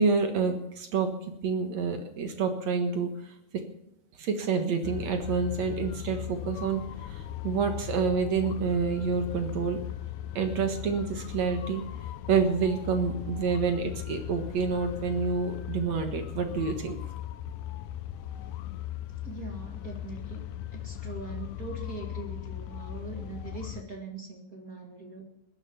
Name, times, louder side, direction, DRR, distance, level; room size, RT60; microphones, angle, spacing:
voice 1, 0.0-3.3 4.2-9.8 10.4-11.8 12.3-17.0 17.5-17.6, right 5 dB, 55° right, 6 dB, 2.2 m, -28 dB
sound 1, 4.8-23.8, left 12 dB, 80° left, 1.8 m, -38 dB
voice 2, 19.2-20.5 20.7-25.3, right 3 dB, 35° right, 1 dB, 1.6 m, -41 dB
20.5 x 9.8 x 7.0 m, 0.80 s
omnidirectional pair, 4.5 m